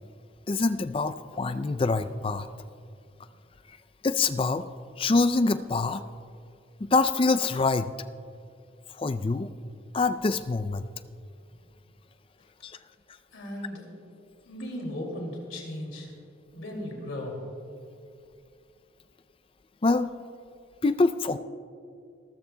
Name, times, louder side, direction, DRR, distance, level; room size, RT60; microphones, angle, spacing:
voice 1, 0.5-2.5 4.0-4.6 5.0-6.0 6.8-7.9 9.0-9.5 9.9-10.9 12.6-12.8 19.8-20.1 20.8-21.4, left 3 dB, 25° left, 12 dB, 0.4 m, -25 dB
voice 2, 13.3-13.9 14.5-16.1 16.5-17.4, left 1 dB, 80° left, 0 dB, 2.4 m, -36 dB
25.5 x 14.0 x 2.2 m, 2.4 s
head